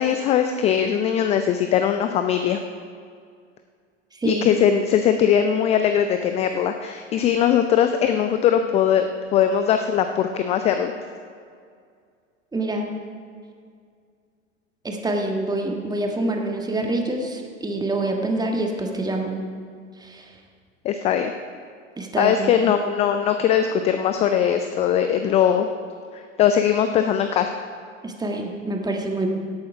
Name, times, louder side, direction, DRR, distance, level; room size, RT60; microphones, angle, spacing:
voice 1, 0.0-2.6 4.2-9.1 9.3-10.9 20.8-21.3 22.2-25.7 26.1-27.5, left 9 dB, 15° left, 7 dB, 0.4 m, -20 dB
voice 2, 4.2-4.6 12.5-12.9 14.8-19.4 20.0-20.3 22.0-22.4 28.0-29.3, right 2 dB, 10° right, 2 dB, 1.6 m, -26 dB
17.0 x 8.5 x 4.8 m, 2.2 s
figure-of-eight pair, 85°, 40 cm